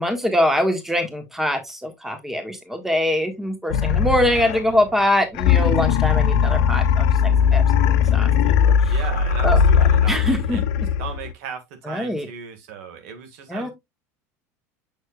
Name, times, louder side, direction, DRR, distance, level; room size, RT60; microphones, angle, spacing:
voice 1, 0.0-7.1 7.5-8.5 9.4-9.6 10.1-10.9 11.9-12.3 13.5-13.7, left 1 dB, 5° right, 1.6 m, -23 dB
sound 1, 3.7-4.8 5.3-11.3, left 7 dB, 70° left, 0.6 m, -18 dB
voice 2, 8.9-13.7, right 7 dB, 70° right, 1.8 m, -37 dB
6.4 x 6.3 x 2.3 m
hypercardioid pair, 90°, 8 cm